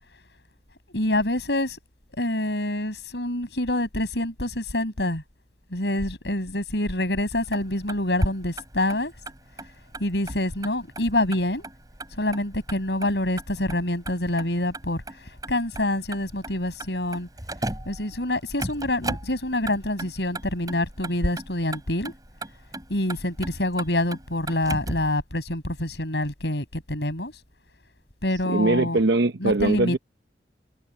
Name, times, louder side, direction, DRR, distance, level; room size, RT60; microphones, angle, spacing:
voice 1, 0.9-1.8 2.2-5.2 5.7-9.1 10.0-11.7 12.1-15.0 15.5-17.3 17.8-22.1 22.9-27.3 28.2-29.0 29.4-30.0, left 1 dB, 75° left, 6.7 m, -26 dB
Motor vehicle (road), 7.4-25.1, right 2 dB, 20° right, 7.7 m, -38 dB
voice 2, 28.4-30.0, right 2 dB, 75° right, 0.9 m, -22 dB
head